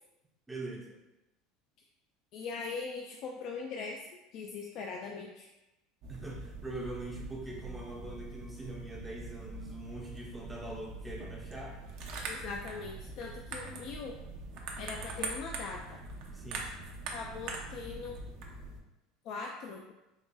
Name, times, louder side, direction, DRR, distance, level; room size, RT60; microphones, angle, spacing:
voice 1, 0.5-1.0 6.1-11.8 16.3-16.7, right 2 dB, 5° right, -3 dB, 0.5 m, -43 dB
voice 2, 2.3-5.5 12.2-14.2 14.8-16.0 17.1-18.2 19.2-19.8, left 4 dB, 55° left, 1 dB, 0.3 m, -41 dB
Metal Gun Shaking, 6.0-18.8, right 3 dB, 60° right, 0.6 m, -43 dB
3.9 x 2.9 x 2.2 m, 0.97 s
supercardioid pair, 130°, 0 cm